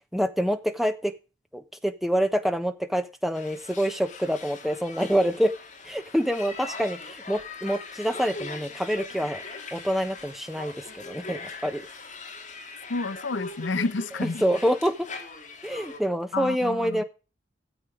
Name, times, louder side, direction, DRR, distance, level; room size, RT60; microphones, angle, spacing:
voice 1, 0.1-1.1 1.5-5.5 5.8-9.4 9.7-11.8 14.2-15.1 15.6-17.0, equal, ahead, 1.2 m, -26 dB
sound 1, 3.3-16.0, left 3 dB, 40° left, 2.9 m, -41 dB
voice 2, 12.9-14.4 16.3-17.0, left 3 dB, 85° left, 0.7 m, -30 dB
14.0 x 7.9 x 5.0 m
head